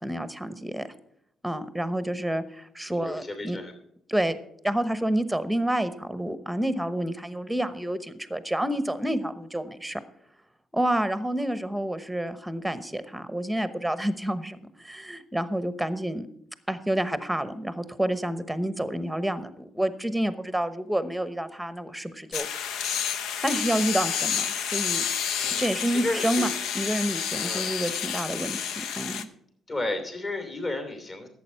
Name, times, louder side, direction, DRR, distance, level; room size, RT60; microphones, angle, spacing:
voice 1, 0.0-0.9 1.4-3.6 4.1-4.4 4.6-10.0 10.7-16.3 16.7-22.5 23.4-25.0 25.6-26.5 26.7-28.7 29.0-29.3, right 1 dB, 5° right, 12 dB, 1.0 m, -29 dB
voice 2, 2.9-3.7 25.4-26.5 27.4-27.7 29.7-31.3, left 2 dB, 35° left, 5 dB, 2.9 m, -33 dB
sound 1, 22.3-29.2, left 8 dB, 85° left, 0.7 m, -30 dB
11.5 x 8.1 x 5.6 m, 0.73 s
cardioid pair, 90°, 0 cm